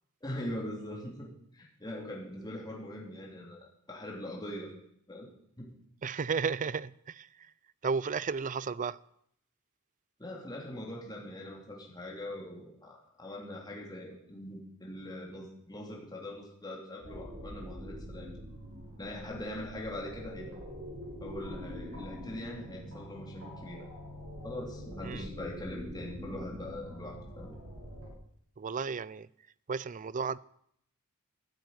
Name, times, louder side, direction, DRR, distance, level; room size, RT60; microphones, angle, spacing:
voice 1, 0.2-4.7 5.1-5.3 5.6-5.7 10.2-18.3 19.0-20.6 21.2-23.9 24.4-27.6, left 1 dB, 20° left, 2.8 m, -42 dB
voice 2, 6.0-7.5 7.8-9.0 25.0-25.3 28.6-29.3 29.7-30.4, right 5 dB, 35° right, 0.4 m, -33 dB
sound 1, 17.0-28.1, equal, 90° right, 6.7 m, -44 dB
12.5 x 9.3 x 9.2 m
head